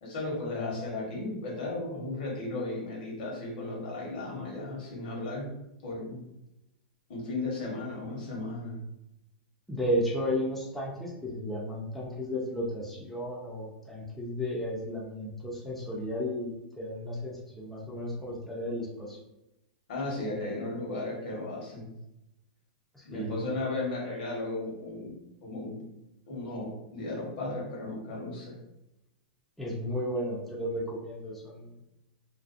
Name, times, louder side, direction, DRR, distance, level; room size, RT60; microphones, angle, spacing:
voice 1, 0.0-5.5 5.8-6.2 7.1-8.8 19.9-21.9 23.0-25.1 25.4-25.8 26.3-28.6, left 2 dB, 65° left, -3 dB, 1.1 m, -35 dB
voice 2, 9.7-19.2 23.1-23.3 29.6-31.7, equal, 5° left, -5 dB, 0.5 m, -33 dB
2.5 x 2.3 x 2.5 m, 0.91 s
hypercardioid pair, 130°, 5 cm